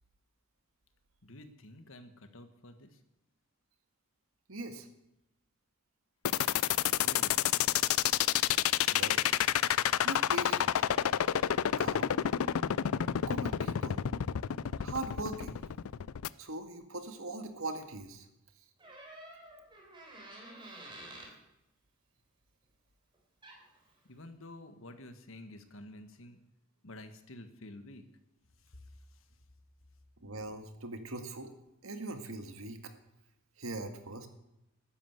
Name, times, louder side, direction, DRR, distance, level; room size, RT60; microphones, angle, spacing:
voice 1, 1.2-3.0 7.0-7.7 24.0-26.4 26.8-28.0, left 1 dB, 65° left, 9 dB, 1.6 m, -50 dB
voice 2, 4.5-4.9 8.9-9.2 10.0-10.7 11.8-12.1 13.2-14.0 14.8-15.6 16.4-18.3 30.2-31.5 31.8-32.9 33.6-34.3, right 2 dB, 75° right, 7 dB, 1.9 m, -40 dB
sound 1, 6.3-16.3, left 10 dB, 80° left, 0.4 m, -29 dB
Door, 18.8-21.4 23.1-23.2 23.4-23.8, right 1 dB, 25° right, 3.7 m, -49 dB
13.0 x 10.5 x 8.0 m, 0.90 s
head